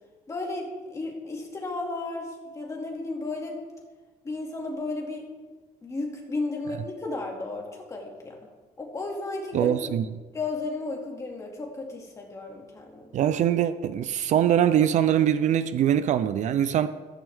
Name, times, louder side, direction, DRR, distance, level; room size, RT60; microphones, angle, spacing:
voice 1, 0.3-3.6 4.2-5.2 5.8-8.4 8.8-9.9 10.3-13.2, left 3 dB, 20° left, 2.4 m, -34 dB
voice 2, 9.5-10.1 13.1-16.9, right 10 dB, 55° right, 0.6 m, -23 dB
15.0 x 15.0 x 3.6 m
cardioid pair, 175°, 15 cm